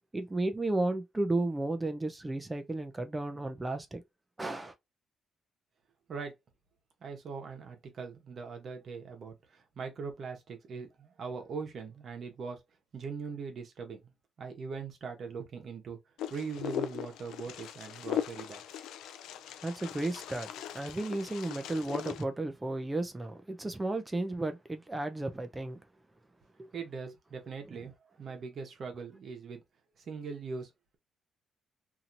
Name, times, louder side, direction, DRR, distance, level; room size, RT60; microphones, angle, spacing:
voice 1, 0.1-4.0 4.4-4.7 19.6-20.5 20.7-25.8, right 2 dB, 15° right, 0.6 m, -33 dB
voice 2, 7.0-12.6 12.9-14.1 14.4-16.0 16.3-18.8 26.7-29.6 30.1-31.0, right 5 dB, 55° right, 1.1 m, -41 dB
Wind, 16.2-22.2, left 10 dB, 85° left, 0.3 m, -39 dB
2.8 x 2.8 x 2.5 m
cardioid pair, 90°, 0 cm